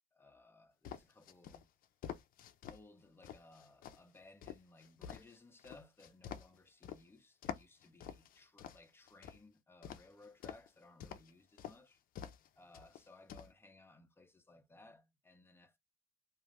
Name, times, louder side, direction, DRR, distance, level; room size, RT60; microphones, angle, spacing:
voice 1, 0.1-1.7 2.7-12.0 12.6-15.8, left 2 dB, 15° left, 0.6 m, -61 dB
sound 1, 0.8-2.8 3.2-7.0 7.4-9.4 9.8-10.7 11.0-11.3 11.6-11.8 12.2-12.5 12.7-13.5, left 9 dB, 55° left, 0.5 m, -48 dB
2.4 x 2.3 x 3.2 m
cardioid pair, 110°, 17 cm